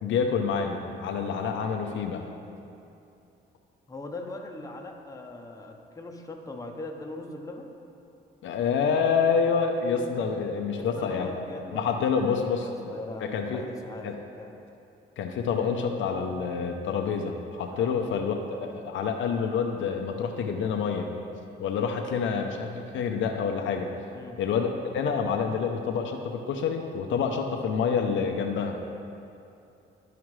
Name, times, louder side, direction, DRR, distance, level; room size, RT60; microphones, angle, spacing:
voice 1, 0.0-2.3 8.4-11.3 11.7-12.9 13.2-13.6 14.0-14.1 15.2-21.1 21.6-23.9 24.4-24.7 24.9-28.8, left 6 dB, 75° left, 3 dB, 0.6 m, -27 dB
voice 2, 3.9-7.7 10.7-14.6 17.8-18.0 24.1-24.4, left 2 dB, 15° left, 2 dB, 0.9 m, -40 dB
12.5 x 4.9 x 3.2 m, 2.7 s
cardioid pair, 90°, 20 cm